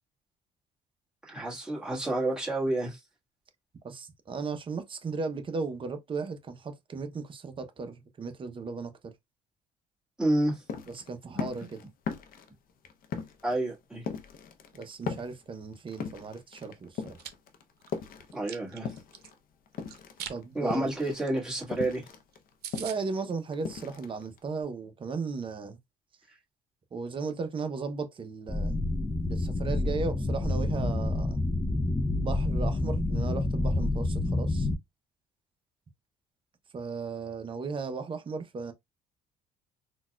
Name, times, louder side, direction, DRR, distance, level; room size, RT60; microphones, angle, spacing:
voice 1, 1.3-3.0 10.2-10.6 13.4-14.0 18.3-18.9 20.5-22.0, right 1 dB, 5° right, 1.4 m, -29 dB
voice 2, 3.8-9.1 10.9-11.9 14.7-17.2 20.3-20.9 22.8-25.8 26.9-28.8 29.3-31.4 32.2-34.7 36.7-38.7, right 4 dB, 30° right, 0.6 m, -36 dB
sound 1, 10.3-19.4 19.7-24.6, left 6 dB, 55° left, 0.6 m, -39 dB
Chewing mastication, 16.9-17.3 17.8-19.3 19.9-20.4 20.7-20.9 21.3-21.4 21.6-21.7 22.1-22.2 22.3-22.4 22.6-23.0, right 10 dB, 75° right, 0.6 m, -41 dB
sound 2, 28.5-34.8, left 2 dB, 10° left, 0.4 m, -28 dB
3.9 x 2.2 x 2.2 m
cardioid pair, 110°, 17 cm